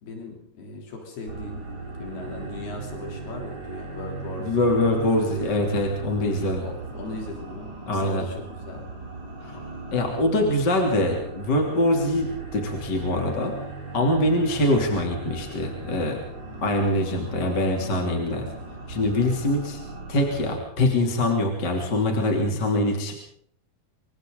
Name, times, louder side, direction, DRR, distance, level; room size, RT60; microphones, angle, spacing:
voice 1, 0.0-1.7 2.0-5.1 6.4-8.9, left 3 dB, 85° left, 1 dB, 5.3 m, -38 dB
sound 1, 1.3-20.5, right 2 dB, 25° right, 6.8 m, -37 dB
voice 2, 4.4-6.6 7.9-8.3 9.4-9.6 9.9-13.5 13.9-16.2 16.6-18.5 18.9-19.8 20.1-23.1, left 1 dB, 30° left, 1 dB, 3.3 m, -23 dB
26.0 x 25.0 x 3.9 m, 0.65 s
omnidirectional pair, 4.4 m